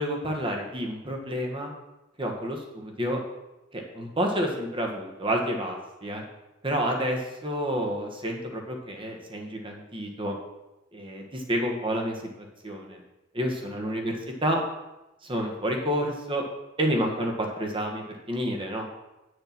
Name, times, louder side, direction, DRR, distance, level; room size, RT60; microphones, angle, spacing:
voice 1, 0.0-1.7 2.2-3.2 3.7-6.2 6.6-10.3 10.9-12.2 12.6-13.0 13.3-14.1 14.4-14.6 15.2-16.4 16.8-18.9, equal, 25° right, 1 dB, 1.6 m, -29 dB
9.0 x 6.6 x 6.0 m, 1.0 s
head